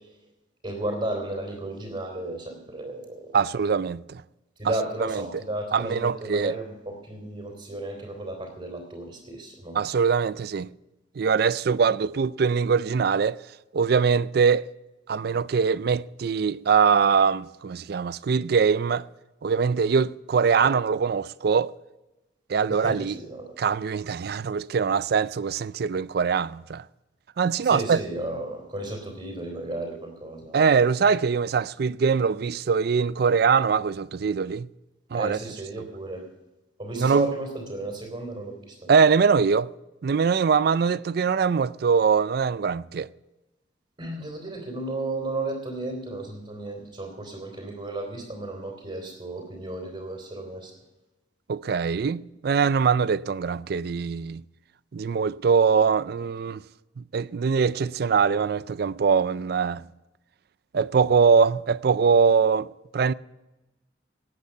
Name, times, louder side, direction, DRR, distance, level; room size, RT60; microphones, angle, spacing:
voice 1, 0.6-3.4 4.6-9.8 20.6-20.7 22.7-23.5 27.6-30.6 35.1-36.2 36.8-38.9 44.0-50.7, right 2 dB, 35° right, 3.0 m, -33 dB
voice 2, 3.3-4.2 4.6-4.7 5.0-5.3 5.7-6.5 9.7-10.7 11.2-13.4 13.7-14.7 15.1-19.1 19.4-21.7 22.5-23.2 23.6-26.8 27.4-28.0 30.5-34.7 35.1-35.4 37.0-37.3 38.9-39.7 40.0-43.1 51.5-54.4 54.9-56.6 57.0-59.8 60.7-62.7 62.9-63.1, right 6 dB, 55° right, 0.4 m, -22 dB
18.5 x 8.2 x 5.7 m
head